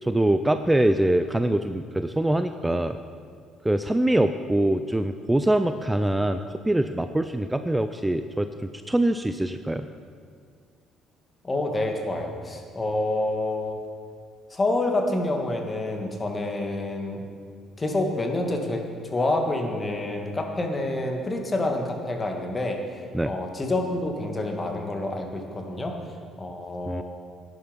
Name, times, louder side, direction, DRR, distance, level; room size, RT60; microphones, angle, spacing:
voice 1, 0.0-3.0 3.6-9.9 23.1-23.3 26.9-27.0, right 1 dB, 10° right, 9 dB, 0.5 m, -24 dB
voice 2, 11.4-13.8 14.5-17.2 17.8-25.9 26.4-27.0, left 2 dB, 30° left, 3 dB, 2.0 m, -28 dB
11.5 x 9.6 x 5.3 m, 2.1 s
hypercardioid pair, 55°, 0 cm